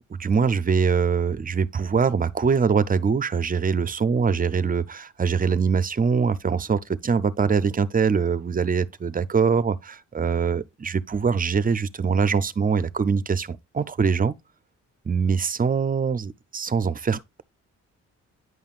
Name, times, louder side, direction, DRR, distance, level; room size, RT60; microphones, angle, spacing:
voice 1, 0.0-14.4 15.1-17.4, right 5 dB, 30° right, 0.5 m, -23 dB
9.6 x 5.5 x 2.4 m
cardioid pair, 90°, 30 cm